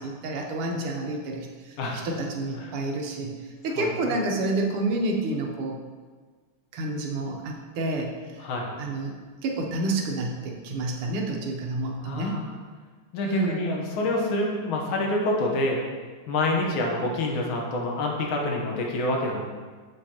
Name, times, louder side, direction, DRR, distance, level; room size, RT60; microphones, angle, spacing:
voice 1, 0.2-1.8 2.0-5.8 6.7-8.4 8.8-9.1 9.4-12.4 13.2-13.6, right 2 dB, 85° right, 1 dB, 1.8 m, -29 dB
voice 2, 3.8-4.2 8.4-8.7 12.0-12.4 13.1-15.8 16.3-19.4, left 2 dB, 70° left, 0 dB, 1.7 m, -27 dB
7.7 x 5.2 x 2.8 m, 1.5 s
omnidirectional pair, 2.4 m